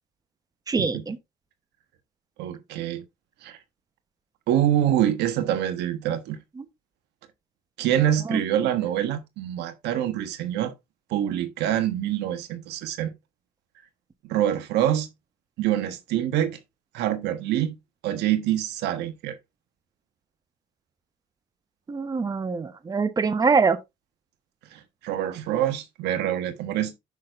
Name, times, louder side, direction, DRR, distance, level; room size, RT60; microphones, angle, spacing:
voice 1, 0.7-1.2 8.3-8.4 21.9-23.8, right 4 dB, 20° right, 0.9 m, -23 dB
voice 2, 2.4-3.0 3.4-3.6 4.5-6.4 7.8-10.7 11.1-13.1 14.2-15.1 15.6-16.6 16.9-17.8 18.0-19.4 24.7-26.9, right 11 dB, 85° right, 1.3 m, -25 dB
9.6 x 6.3 x 2.5 m
cardioid pair, 110°, 17 cm